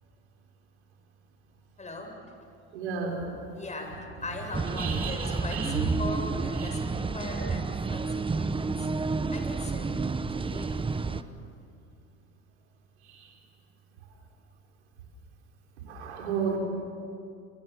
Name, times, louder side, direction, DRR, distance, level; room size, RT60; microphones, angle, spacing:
voice 1, 1.8-2.1 3.6-7.6 7.9-8.9 9.3-11.3, left 2 dB, 20° left, 3 dB, 7.7 m, -40 dB
voice 2, 2.7-3.3 4.7-5.8 6.6-6.7 10.5-10.7 13.0-13.3 15.9-16.6, right 6 dB, 90° right, 0 dB, 5.4 m, -33 dB
sound 1, 4.5-11.2, right 4 dB, 15° right, 1.0 m, -30 dB
28.0 x 23.5 x 7.6 m, 2.4 s
hypercardioid pair, 85°, 33 cm